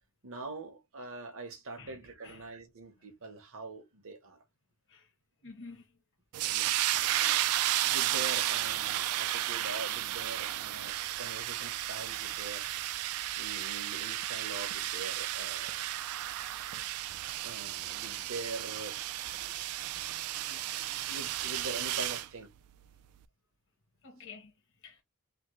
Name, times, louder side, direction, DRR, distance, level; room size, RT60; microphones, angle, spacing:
voice 1, 0.2-4.4 6.5-6.8 7.8-12.6 13.4-15.8 16.3-16.5 17.4-19.0 19.2-19.5 20.4-22.5, right 3 dB, 65° right, 0.9 m, -43 dB
voice 2, 1.8-2.5 4.9-5.1 5.4-5.8 24.0-24.5 24.8-25.0, left 4 dB, 60° left, 1.0 m, -49 dB
sound 1, 6.3-22.3, right 14 dB, 85° right, 0.3 m, -33 dB
3.5 x 2.0 x 3.0 m
head